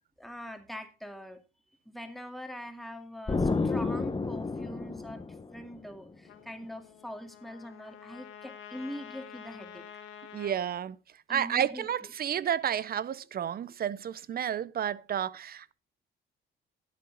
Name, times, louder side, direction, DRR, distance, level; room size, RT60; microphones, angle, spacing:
voice 1, 0.2-1.4 1.9-5.3 5.5-9.8 11.3-11.9, equal, ahead, 2.1 m, -43 dB
Explosion, 3.3-5.9, left 3 dB, 20° left, 1.2 m, -30 dB
Trumpet, 6.2-10.6, left 8 dB, 90° left, 1.6 m, -48 dB
voice 2, 10.3-11.0 11.3-15.7, right 9 dB, 50° right, 0.6 m, -31 dB
12.0 x 8.6 x 3.9 m
cardioid pair, 90°, 20 cm